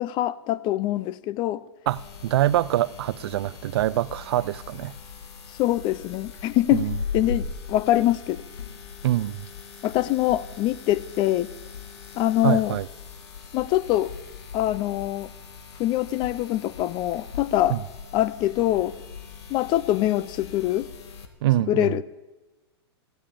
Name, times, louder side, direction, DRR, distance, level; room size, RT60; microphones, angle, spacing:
voice 1, 0.0-1.6 5.6-6.9 7.1-8.4 9.8-11.5 12.2-12.8 13.5-14.1 14.5-15.3 15.8-17.8 18.1-19.0 19.5-20.9 21.7-22.0, left 14 dB, 35° left, 0.5 m, -24 dB
sound 1, 1.9-21.3, left 5 dB, 75° left, 1.7 m, -39 dB
voice 2, 1.9-4.9 6.7-7.0 9.0-9.5 12.4-12.9 17.7-17.8 21.4-22.0, right 14 dB, 65° right, 0.4 m, -24 dB
15.0 x 7.5 x 8.6 m
hypercardioid pair, 125°, 14 cm